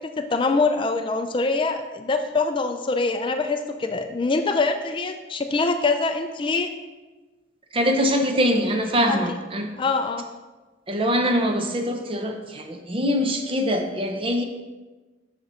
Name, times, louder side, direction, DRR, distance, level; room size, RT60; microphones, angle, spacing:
voice 1, 0.3-6.7 9.1-9.2 9.8-10.2, left 3 dB, 25° left, 6 dB, 0.4 m, -24 dB
voice 2, 7.7-9.7 10.9-14.4, equal, 30° right, 4 dB, 0.7 m, -23 dB
6.4 x 5.9 x 4.4 m, 1.2 s
head